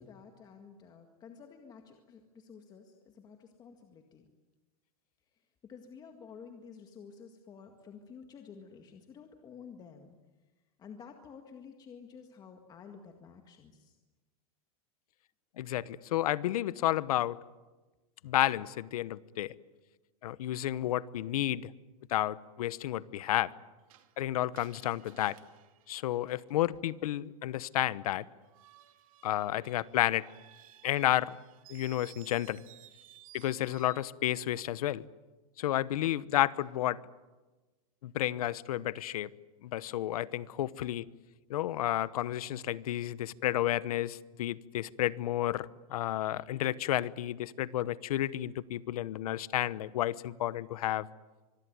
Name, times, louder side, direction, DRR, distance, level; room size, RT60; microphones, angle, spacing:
voice 1, 0.0-4.3 5.6-10.2 10.8-13.9, left 6 dB, 20° left, 4 dB, 1.9 m, -51 dB
voice 2, 15.6-17.4 18.2-19.5 20.2-21.7 22.1-23.5 24.2-25.4 25.9-28.2 29.2-30.3 30.8-31.4 31.7-32.6 33.3-35.0 35.6-37.0 38.0-39.3 39.6-41.1 41.5-51.1, left 13 dB, 75° left, 18 dB, 1.0 m, -31 dB
Screech, 23.9-26.8 28.4-34.1, right 14 dB, 65° right, 2.6 m, -58 dB
25.0 x 22.5 x 9.4 m, 1.2 s
supercardioid pair, 155°, 19 cm